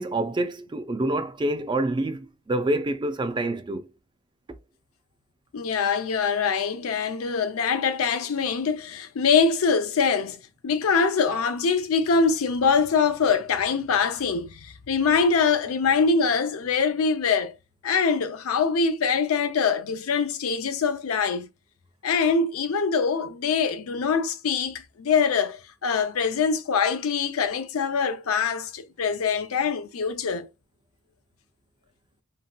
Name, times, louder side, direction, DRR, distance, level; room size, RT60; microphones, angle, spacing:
voice 1, 0.0-3.9, right 1 dB, 20° right, 0.4 m, -27 dB
voice 2, 5.5-17.5 17.8-21.5 22.0-30.5, left 5 dB, 85° left, 0.5 m, -24 dB
2.9 x 2.8 x 2.2 m
head